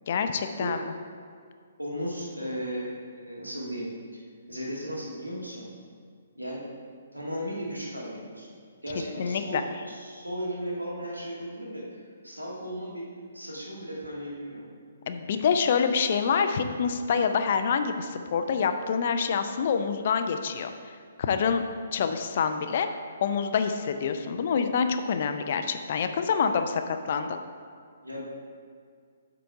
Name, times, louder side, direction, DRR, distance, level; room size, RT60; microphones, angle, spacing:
voice 1, 0.1-0.8 9.2-9.6 15.1-20.7 21.2-21.6 21.9-22.9 23.2-27.4, left 6 dB, 50° left, 8 dB, 0.5 m, -26 dB
voice 2, 1.8-4.2 4.5-5.7 6.4-6.6 7.1-8.6 8.8-13.0 13.3-14.6 28.0-28.3, equal, 90° right, -4 dB, 1.8 m, -36 dB
7.7 x 4.0 x 4.8 m, 2.2 s
figure-of-eight pair, 130°, 0 cm